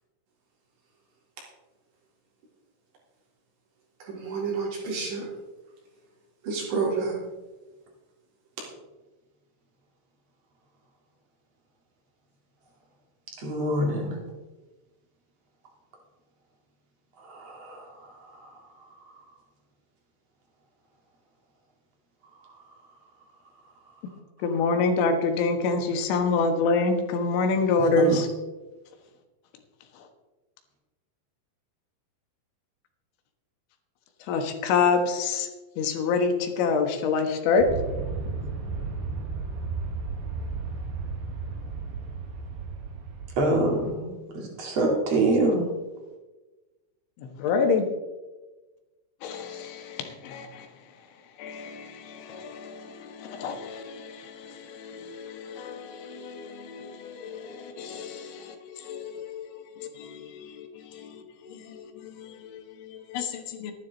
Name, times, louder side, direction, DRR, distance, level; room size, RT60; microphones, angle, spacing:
voice 1, 4.0-5.3 6.4-7.2, right 4 dB, 80° right, 6.1 m, -29 dB
voice 2, 13.4-14.2 17.2-18.1 18.4-18.5 27.9-28.2 43.4-44.2 44.6-45.7, right 2 dB, 45° right, 2.6 m, -25 dB
voice 3, 24.4-28.3 34.3-35.5 35.8-37.7 47.2-47.9 49.9-50.7 51.4-60.7 60.9-63.7, left 4 dB, 85° left, 3.8 m, -27 dB
Aircraft, 37.6-43.9, right 4 dB, 60° right, 2.9 m, -34 dB
13.5 x 11.5 x 4.0 m
omnidirectional pair, 5.2 m